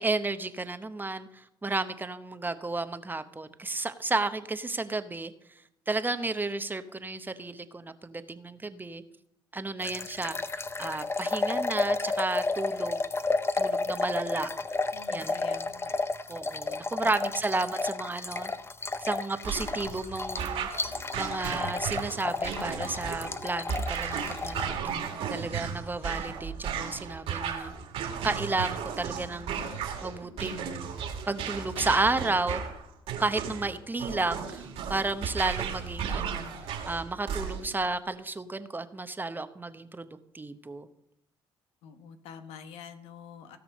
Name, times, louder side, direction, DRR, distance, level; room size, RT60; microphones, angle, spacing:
voice 1, 0.0-5.3 5.9-9.0 9.5-13.0 13.6-14.5 15.1-15.4 16.3-18.5 19.0-24.7 25.3-27.7 28.2-30.9 31.3-32.6 33.2-36.4 36.9-40.9, right 3 dB, 20° right, 10 dB, 1.0 m, -32 dB
sound 1, 9.8-24.7, left 3 dB, 25° left, 0.7 m, -32 dB
voice 2, 14.9-15.9 17.0-17.1 41.8-43.6, left 7 dB, 75° left, 9 dB, 1.1 m, -46 dB
sound 2, 19.4-37.8, right 7 dB, 70° right, 2.0 m, -35 dB
17.0 x 6.1 x 5.3 m, 0.79 s
supercardioid pair, 65°, 10 cm